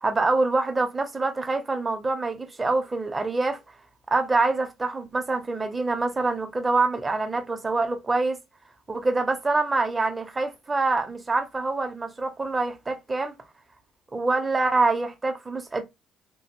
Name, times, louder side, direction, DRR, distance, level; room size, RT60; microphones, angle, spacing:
voice 1, 0.0-3.6 4.1-8.4 8.9-13.3 14.1-15.8, right 3 dB, 25° right, 0.9 m, -25 dB
3.1 x 2.6 x 3.0 m
cardioid pair, 90°, 0 cm